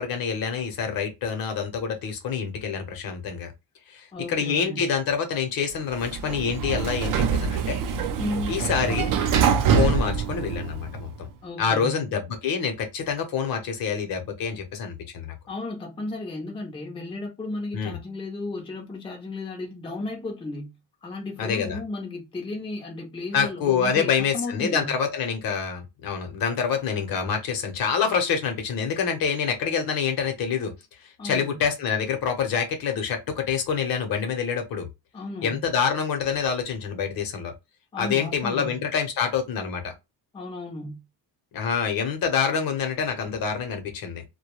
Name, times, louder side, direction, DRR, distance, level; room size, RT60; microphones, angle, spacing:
voice 1, 0.0-3.5 3.9-7.8 8.5-9.1 9.7-11.3 11.6-15.3 17.7-18.0 21.4-21.8 23.3-30.7 31.0-34.9 35.4-37.5 38.0-39.9 41.5-44.2, left 6 dB, 55° left, 0.8 m, -26 dB
voice 2, 4.1-4.8 8.2-8.6 11.4-12.1 15.5-20.7 21.0-25.0 31.2-31.5 35.1-35.7 37.9-38.8 40.3-41.0, left 2 dB, 15° left, 0.5 m, -34 dB
Sliding door, 5.9-11.1, right 7 dB, 50° right, 0.5 m, -24 dB
2.2 x 2.2 x 2.9 m
cardioid pair, 155°, 42 cm